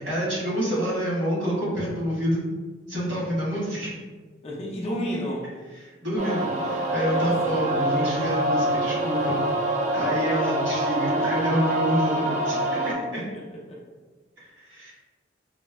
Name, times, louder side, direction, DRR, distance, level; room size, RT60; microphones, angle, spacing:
voice 1, 0.0-2.4 2.9-3.9 5.8-9.4 9.9-13.3 14.4-14.9, equal, 75° right, -7 dB, 1.4 m, -28 dB
voice 2, 4.4-5.5 7.1-7.6 12.9-13.8, equal, 30° left, -3 dB, 0.4 m, -33 dB
sound 1, 6.2-12.9, right 1 dB, 35° right, 0.3 m, -25 dB
4.1 x 2.0 x 2.2 m, 1.3 s
head